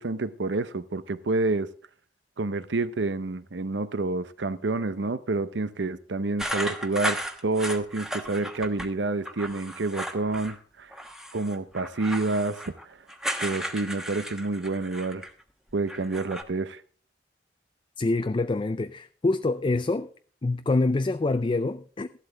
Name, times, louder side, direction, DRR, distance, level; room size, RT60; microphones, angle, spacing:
voice 1, 0.0-1.7 2.4-10.9 11.3-13.0 13.4-15.2 15.7-16.8, right 3 dB, 90° right, 0.7 m, -28 dB
sound 1, 6.4-8.9 9.2-10.6 10.9-15.4 15.7-16.4, equal, 5° right, 1.1 m, -35 dB
voice 2, 18.0-20.1 20.4-22.2, left 2 dB, 30° left, 0.4 m, -26 dB
14.0 x 11.5 x 3.4 m
head